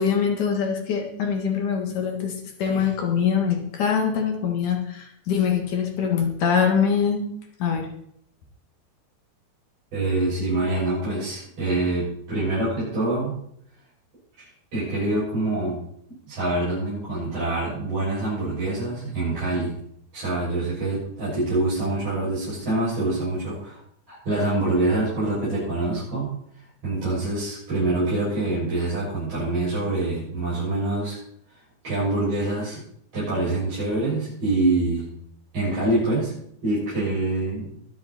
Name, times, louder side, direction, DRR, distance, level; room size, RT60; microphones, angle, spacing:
voice 1, 0.0-2.3 2.6-7.3 7.6-7.9, left 7 dB, 55° left, 2 dB, 2.6 m, -23 dB
voice 2, 9.9-13.3 14.7-15.8 16.2-19.7 20.1-23.8 24.1-26.3 26.8-31.2 31.8-32.8 33.1-35.0 35.5-36.3 36.6-37.7, right 2 dB, 30° right, -11 dB, 8.0 m, -25 dB
22.0 x 7.5 x 4.3 m, 0.69 s
omnidirectional pair, 5.5 m